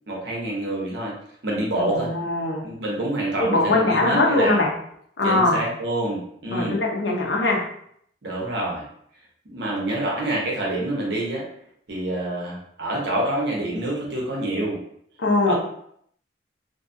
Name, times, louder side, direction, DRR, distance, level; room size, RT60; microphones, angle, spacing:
voice 1, 0.1-1.1 1.4-2.1 2.6-4.6 5.2-6.8 8.2-8.9 9.5-11.5 11.9-14.8 15.5-15.6, right 1 dB, 65° right, -2 dB, 0.8 m, -27 dB
voice 2, 1.8-2.6 3.4-4.7 5.2-5.6 6.5-7.6 15.2-15.5, left 2 dB, 75° left, -1 dB, 0.7 m, -21 dB
2.6 x 2.3 x 2.6 m, 0.68 s
head